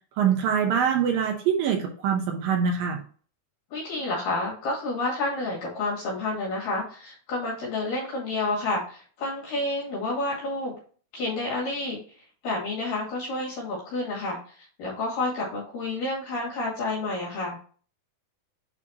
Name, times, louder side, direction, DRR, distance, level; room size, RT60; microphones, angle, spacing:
voice 1, 0.2-3.0, right 7 dB, 75° right, 2 dB, 2.5 m, -24 dB
voice 2, 3.7-10.7 11.1-12.0 12.4-17.6, left 2 dB, 65° left, -5 dB, 3.6 m, -29 dB
8.4 x 4.3 x 2.9 m, 0.42 s
omnidirectional pair, 4.3 m